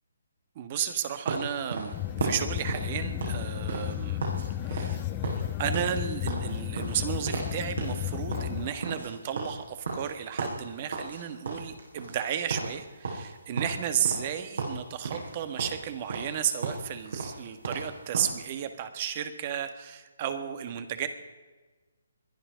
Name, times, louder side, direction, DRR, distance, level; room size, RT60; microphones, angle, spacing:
voice 1, 0.5-4.2 4.6-5.0 5.6-21.1, right 9 dB, 35° right, 9 dB, 1.5 m, -33 dB
sound 1, 1.3-4.4 4.7-5.0 5.2-7.5 7.8-8.0 8.3-11.2 11.4-12.2 12.5-12.7 13.0-14.3 14.6-15.3 15.6-18.4, right 3 dB, 70° right, 6.4 m, -34 dB
sound 2, 1.9-8.7, left 13 dB, 25° left, 1.0 m, -33 dB
21.5 x 11.5 x 5.2 m, 1.3 s
figure-of-eight pair, 145°, 0 cm